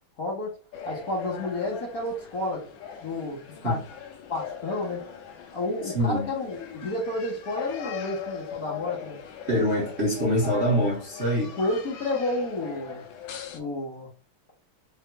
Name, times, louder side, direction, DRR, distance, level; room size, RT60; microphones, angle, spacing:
voice 1, 0.2-0.6 0.8-2.7 3.0-3.8 4.3-5.0 5.5-9.2 11.6-13.0 13.5-14.1, left 2 dB, 50° left, 1.7 m, -30 dB
sound 1, 0.7-13.6, left 7 dB, 75° left, 1.3 m, -40 dB
voice 2, 5.8-6.3 9.5-11.5, equal, 40° right, 1.0 m, -24 dB
5.4 x 2.7 x 2.3 m
omnidirectional pair, 2.4 m